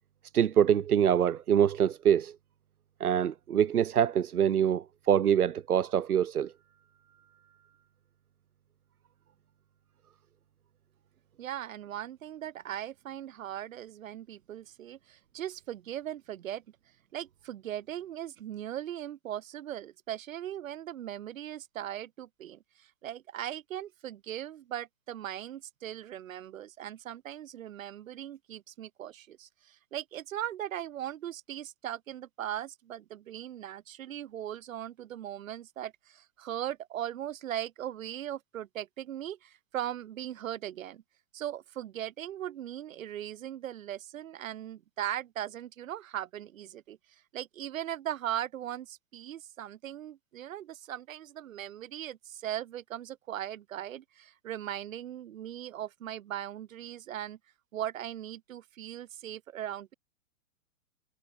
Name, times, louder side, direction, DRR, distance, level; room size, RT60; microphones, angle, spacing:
voice 1, 0.3-2.3 3.0-6.5, right 9 dB, 85° right, 1.2 m, -25 dB
voice 2, 11.4-16.6 17.1-41.0 41.3-57.4 57.7-59.9, right 11 dB, 65° right, 7.9 m, -39 dB
hypercardioid pair, 125°, 43 cm